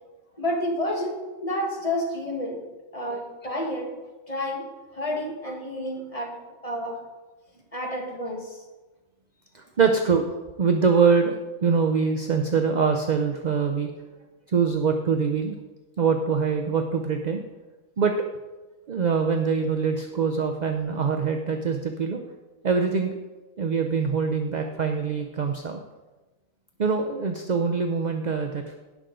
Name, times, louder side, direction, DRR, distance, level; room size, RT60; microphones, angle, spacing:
voice 1, 0.4-2.6 2.9-4.0 4.3-4.7 4.9-7.0 7.7-8.6, left 1 dB, 25° left, 1 dB, 1.6 m, -30 dB
voice 2, 9.5-13.9 14.5-15.6 16.0-17.4 18.0-18.1 18.9-22.2 22.6-23.2 23.6-25.8 26.8-28.8, right 5 dB, 45° right, 5 dB, 0.7 m, -24 dB
17.0 x 6.2 x 3.8 m, 1.2 s
omnidirectional pair, 1.4 m